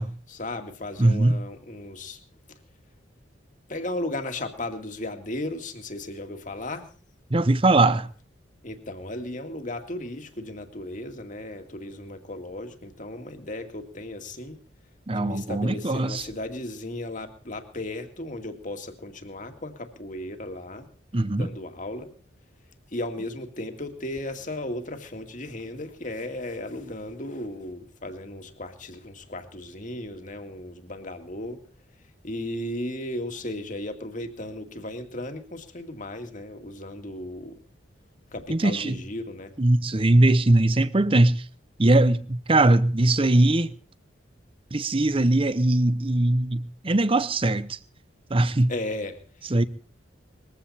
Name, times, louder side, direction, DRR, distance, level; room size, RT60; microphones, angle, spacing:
voice 1, 0.3-2.2 3.7-6.9 8.6-14.6 15.1-20.9 21.3-22.1 22.9-31.6 32.2-37.5 38.3-39.5 48.7-49.5, left 1 dB, 40° left, 2.2 m, -35 dB
voice 2, 1.0-1.4 7.3-8.1 15.1-16.3 21.1-21.5 38.5-39.0 39.6-41.4 41.8-43.7 44.7-47.8 48.3-48.7 49.5-49.6, right 2 dB, 30° right, 0.8 m, -21 dB
21.5 x 15.0 x 4.2 m
head